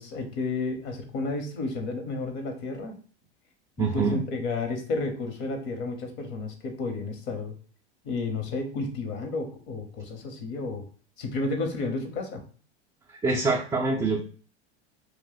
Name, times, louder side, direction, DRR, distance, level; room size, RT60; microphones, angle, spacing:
voice 1, 0.0-2.9 3.8-7.5 8.0-10.8 11.2-12.4, left 3 dB, 55° left, 5 dB, 1.0 m, -32 dB
voice 2, 3.8-4.2 13.2-14.2, right 3 dB, 10° right, -3 dB, 0.3 m, -25 dB
2.5 x 2.2 x 3.9 m, 0.41 s
hypercardioid pair, 100°, 35 cm